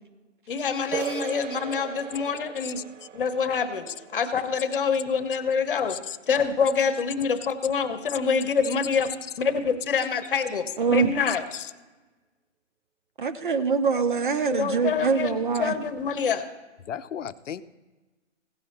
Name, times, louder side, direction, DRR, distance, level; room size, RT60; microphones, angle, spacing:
voice 1, 0.5-2.8 3.1-6.0 6.3-9.1 9.4-11.4 14.5-16.4, left 6 dB, 45° left, 9 dB, 1.0 m, -26 dB
sound 1, 0.9-6.4, right 9 dB, 85° right, 0.5 m, -39 dB
voice 2, 2.6-3.1 3.9-4.0 5.9-6.2 8.1-8.2 11.3-11.7 16.9-17.6, left 9 dB, 75° left, 14 dB, 0.7 m, -36 dB
voice 3, 10.8-11.1 13.2-15.7, right 5 dB, 45° right, 8 dB, 0.6 m, -24 dB
16.0 x 5.6 x 4.2 m, 1.2 s
hypercardioid pair, 165°, 37 cm